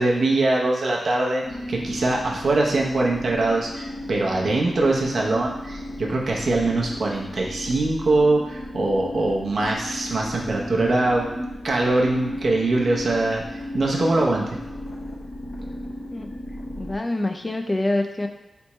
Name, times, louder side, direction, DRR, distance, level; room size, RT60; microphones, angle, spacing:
voice 1, 0.0-13.4 13.7-14.6, right 2 dB, 65° right, -2 dB, 0.8 m, -22 dB
sound 1, 1.4-17.0, left 1 dB, 60° left, 0.8 m, -34 dB
voice 2, 16.8-18.3, left 1 dB, 25° left, 4 dB, 0.3 m, -25 dB
4.3 x 3.4 x 3.0 m, 0.97 s
wide cardioid pair, 85°, 0 cm